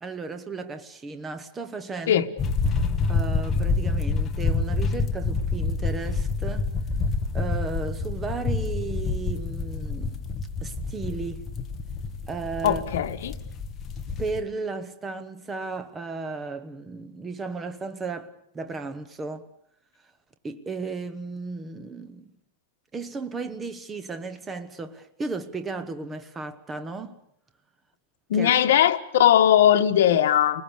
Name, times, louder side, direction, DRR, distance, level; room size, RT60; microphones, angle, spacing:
voice 1, 0.0-2.2 3.1-6.7 7.3-10.3 10.6-11.5 12.3-12.8 14.2-19.5 20.4-22.3 22.9-27.2 28.3-28.5, right 3 dB, 10° right, 1.0 m, -34 dB
sound 1, 2.4-14.4, left 4 dB, 15° left, 1.2 m, -27 dB
voice 2, 12.6-13.3 28.3-30.6, left 10 dB, 70° left, 1.6 m, -19 dB
30.0 x 20.5 x 6.7 m
supercardioid pair, 175°, 0 cm